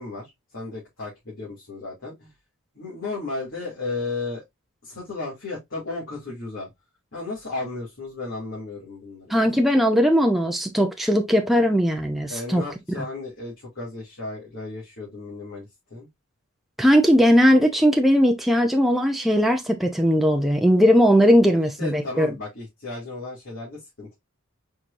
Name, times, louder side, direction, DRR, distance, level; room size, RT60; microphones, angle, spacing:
voice 1, 0.0-2.3 2.7-4.4 4.8-6.7 7.1-9.5 12.3-16.1 21.5-24.1, left 3 dB, 60° left, 2.5 m, -34 dB
voice 2, 9.3-12.6 16.8-22.3, equal, ahead, 0.5 m, -19 dB
4.6 x 4.3 x 2.5 m
head